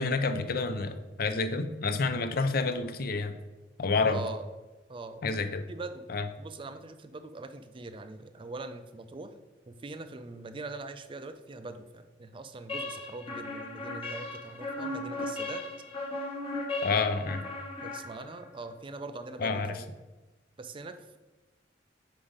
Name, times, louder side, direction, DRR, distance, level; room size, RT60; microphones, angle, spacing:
voice 1, 0.0-3.4 3.8-4.2 5.2-5.6 6.1-6.3 16.8-17.4 19.4-19.7, left 4 dB, 55° left, 9 dB, 0.5 m, -29 dB
voice 2, 4.1-4.5 4.9-5.2 5.7-6.1 6.4-9.3 9.7-15.6 17.8-19.9 20.6-21.2, right 3 dB, 30° right, 9 dB, 0.4 m, -42 dB
sound 1, 12.7-18.6, left 2 dB, 30° left, 1.1 m, -37 dB
5.6 x 4.9 x 5.0 m, 1.2 s
head